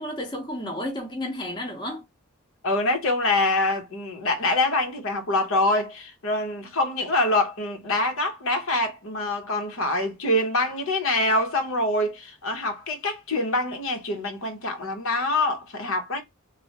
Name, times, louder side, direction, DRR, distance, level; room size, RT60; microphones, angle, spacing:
voice 1, 0.0-2.1, left 1 dB, 20° left, 0.7 m, -32 dB
voice 2, 2.6-16.2, left 2 dB, 65° left, 0.9 m, -25 dB
3.2 x 2.1 x 2.8 m
head